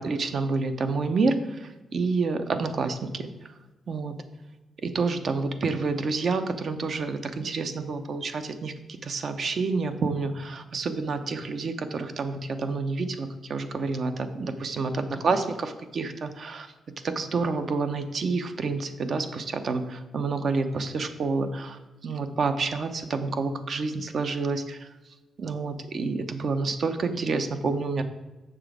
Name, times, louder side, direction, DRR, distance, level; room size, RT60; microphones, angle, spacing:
voice 1, 0.0-3.3 3.9-4.2 4.8-24.9 25.4-28.0, right 4 dB, 50° right, 8 dB, 0.7 m, -29 dB
7.2 x 6.0 x 4.9 m, 1.1 s
cardioid pair, 110°, 0 cm